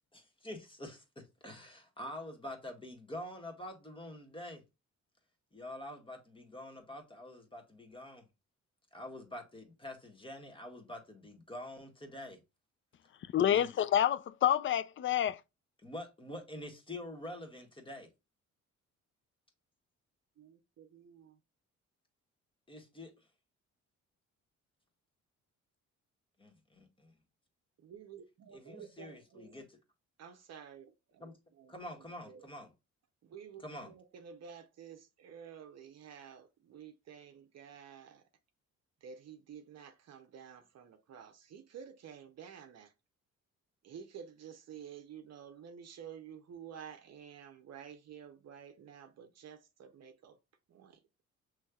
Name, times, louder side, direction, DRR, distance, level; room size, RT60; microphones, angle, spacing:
voice 1, 0.1-4.6 5.5-8.2 8.9-12.4 13.5-13.7 15.8-18.1 22.7-23.1 26.4-27.1 28.5-29.8 31.2-31.3 31.7-32.7 33.6-33.9, left 1 dB, 15° left, 1.5 m, -46 dB
voice 2, 13.3-15.4, left 10 dB, 40° left, 0.4 m, -28 dB
voice 3, 20.4-21.4 27.8-29.5 30.2-31.3 31.6-31.7 32.3-32.5 33.2-38.2 39.0-42.9 43.8-50.4 50.7-51.0, right 8 dB, 60° right, 0.8 m, -51 dB
6.3 x 3.2 x 2.3 m
cardioid pair, 90°, 30 cm